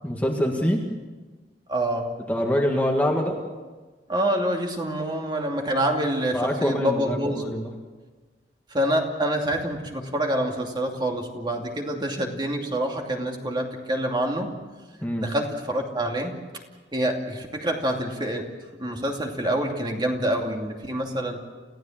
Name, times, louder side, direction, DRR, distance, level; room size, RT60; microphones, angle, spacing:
voice 1, 0.0-0.9 2.3-3.4 6.3-7.7 15.0-15.3, equal, 10° left, 1 dB, 1.8 m, -25 dB
voice 2, 1.7-2.1 4.1-7.4 8.7-14.5 15.2-16.4 16.9-18.4 18.8-21.4, right 1 dB, 25° right, 2 dB, 2.6 m, -26 dB
28.5 x 16.0 x 7.4 m, 1.3 s
head